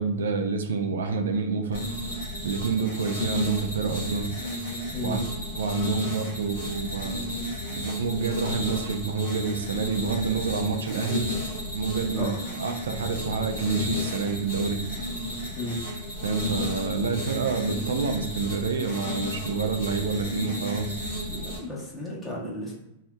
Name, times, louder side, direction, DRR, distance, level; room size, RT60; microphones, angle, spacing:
voice 1, 0.0-1.8 2.4-4.3 5.0-5.2 5.6-7.3 7.8-11.3 11.7-14.8 16.2-21.0, right 5 dB, 80° right, 6 dB, 0.4 m, -28 dB
sound 1, 1.7-21.6, left 1 dB, 80° left, 1.5 m, -33 dB
voice 2, 21.3-22.7, left 1 dB, 20° left, -5 dB, 1.1 m, -33 dB
3.2 x 2.7 x 2.3 m, 0.87 s
hypercardioid pair, 115°, 0 cm